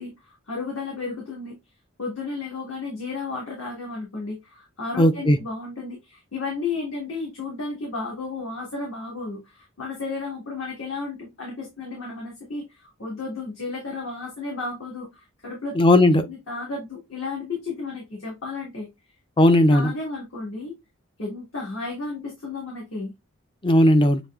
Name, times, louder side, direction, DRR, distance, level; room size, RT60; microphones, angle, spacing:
voice 1, 0.0-1.5 2.0-15.8 16.3-18.9 19.7-20.7 21.2-23.1, left 3 dB, 60° left, 1.7 m, -33 dB
voice 2, 5.0-5.4 15.7-16.2 19.4-19.9 23.6-24.2, left 1 dB, 20° left, 0.5 m, -16 dB
7.0 x 3.1 x 2.4 m
head